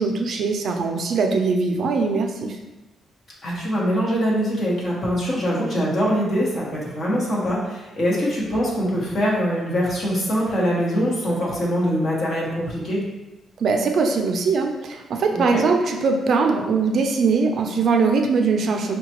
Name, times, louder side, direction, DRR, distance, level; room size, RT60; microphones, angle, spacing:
voice 1, 0.0-2.6 13.6-19.0, right 4 dB, 55° right, 3 dB, 0.4 m, -21 dB
voice 2, 3.4-13.0 15.3-15.6, equal, 45° left, -5 dB, 1.2 m, -23 dB
5.6 x 2.2 x 2.9 m, 1.0 s
cardioid pair, 135°, 0 cm